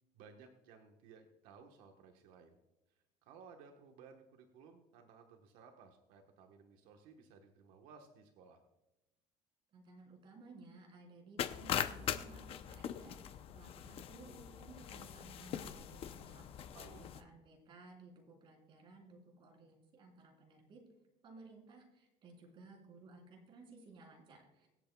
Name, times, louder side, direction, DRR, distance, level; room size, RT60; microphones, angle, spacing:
voice 1, 0.1-2.6 2.9-8.6 16.7-17.1, right 5 dB, 80° right, 4 dB, 1.2 m, -59 dB
voice 2, 9.7-16.5 17.0-20.8 21.2-24.7, right 3 dB, 35° right, 0 dB, 3.4 m, -57 dB
sound 1, 11.4-17.2, left 9 dB, 40° left, 0.6 m, -41 dB
24.0 x 8.2 x 2.3 m, 0.96 s
cardioid pair, 160°, 14 cm